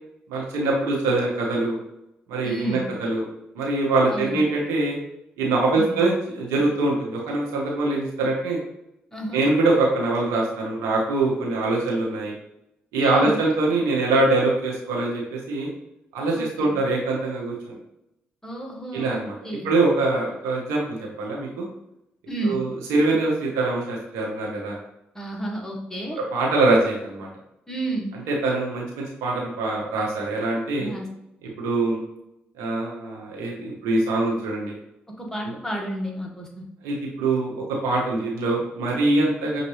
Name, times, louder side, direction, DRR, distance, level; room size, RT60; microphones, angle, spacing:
voice 1, 0.3-1.8 2.3-3.2 3.5-5.0 5.4-8.6 9.3-12.3 12.9-15.7 16.1-17.7 18.9-19.3 19.6-21.7 22.4-24.7 26.3-27.3 28.3-30.9 31.6-32.0 32.6-34.7 36.8-39.6, right 2 dB, 85° right, -2 dB, 0.9 m, -23 dB
voice 2, 2.4-2.9 4.1-4.4 5.7-6.0 9.1-9.4 13.0-13.4 16.3-16.7 18.4-19.7 22.3-22.6 25.1-26.2 27.7-28.1 30.8-31.1 35.1-36.7, right 1 dB, 10° left, -1 dB, 1.4 m, -31 dB
5.6 x 2.6 x 3.1 m, 0.86 s
supercardioid pair, 50°, 5 cm